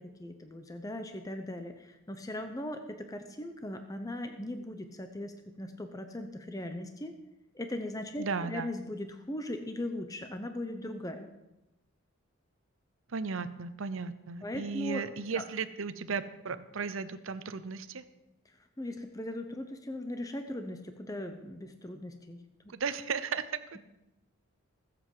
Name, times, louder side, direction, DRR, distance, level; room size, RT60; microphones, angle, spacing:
voice 1, 0.0-7.2 7.5-11.3 14.4-15.0 15.3-15.4 18.5-22.4, left 1 dB, 15° left, 7 dB, 0.7 m, -39 dB
voice 2, 8.2-8.7 13.1-18.0 22.7-23.8, right 5 dB, 65° right, 12 dB, 0.7 m, -35 dB
19.5 x 7.7 x 4.8 m, 0.95 s
head